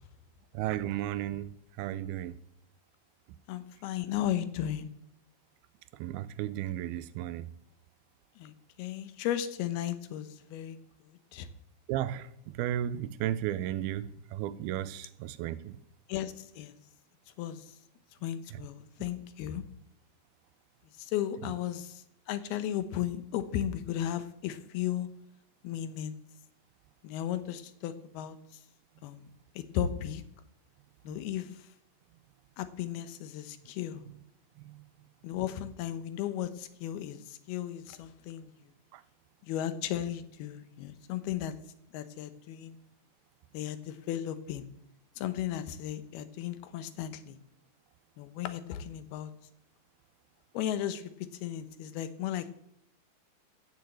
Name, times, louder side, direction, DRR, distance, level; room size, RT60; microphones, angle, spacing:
voice 1, 0.5-2.4 6.0-7.5 11.9-15.8 31.1-31.2 34.7-34.8 38.9-39.0, right 12 dB, 90° right, 16 dB, 2.6 m, -34 dB
voice 2, 3.5-4.9 8.4-8.5 8.8-10.8 11.1-11.5 16.1-16.8 17.4-17.7 18.2-19.6 21.0-25.1 25.6-26.1 27.0-28.4 29.0-29.3 29.6-30.2 31.0-31.7 32.6-34.0 35.2-38.5 39.4-41.5 41.9-42.8 43.5-44.7 45.2-47.4 48.2-49.3 50.5-51.0 51.4-52.5, left 11 dB, 85° left, 11 dB, 2.9 m, -35 dB
15.0 x 7.1 x 7.8 m, 0.75 s
omnidirectional pair, 4.3 m